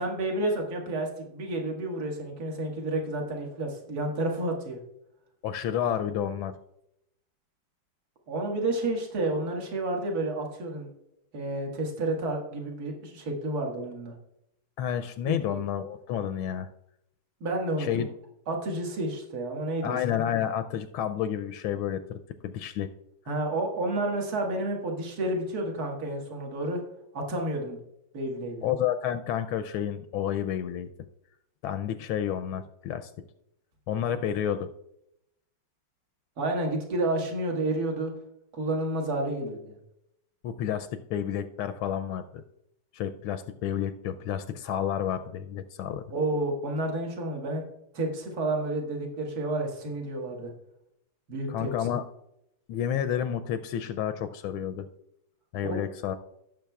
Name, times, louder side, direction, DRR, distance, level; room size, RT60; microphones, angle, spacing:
voice 1, 0.0-4.8 8.3-10.9 11.3-14.1 15.3-15.6 17.4-18.0 18.5-20.0 23.3-26.8 27.1-27.8 28.1-28.6 36.4-38.1 38.5-39.8 46.1-47.6 47.9-50.5 51.3-51.7 55.6-55.9, right 2 dB, 50° right, 1 dB, 2.1 m, -30 dB
voice 2, 5.4-6.5 14.8-16.7 17.8-18.1 19.8-22.9 28.6-30.9 31.6-33.1 33.9-34.7 40.4-42.4 42.9-46.1 51.5-52.0 52.7-54.9 55.5-56.2, left 9 dB, 80° left, 10 dB, 1.4 m, -30 dB
16.5 x 7.4 x 2.3 m, 0.80 s
omnidirectional pair, 2.3 m